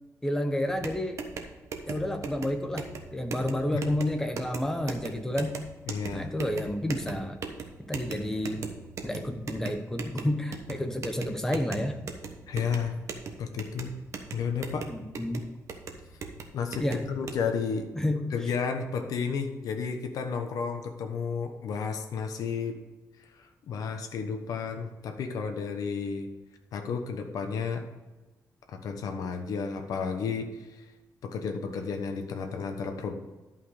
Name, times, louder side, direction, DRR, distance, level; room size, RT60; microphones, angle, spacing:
voice 1, 0.2-1.2 1.9-5.6 6.1-7.4 7.9-8.6 9.0-12.0 14.9-15.4 16.8-17.0 17.9-18.3, left 1 dB, 10° left, 6 dB, 0.9 m, -30 dB
sound 1, 0.7-17.4, right 5 dB, 55° right, 1.1 m, -40 dB
voice 2, 5.9-6.3 12.5-12.9 13.4-13.9 14.3-14.9 16.5-17.9 18.3-22.8 23.4-26.3 26.7-27.8 28.7-30.9 31.2-33.1, left 6 dB, 80° left, 5 dB, 1.1 m, -32 dB
11.5 x 5.5 x 4.9 m, 1.2 s
wide cardioid pair, 150°, 6 cm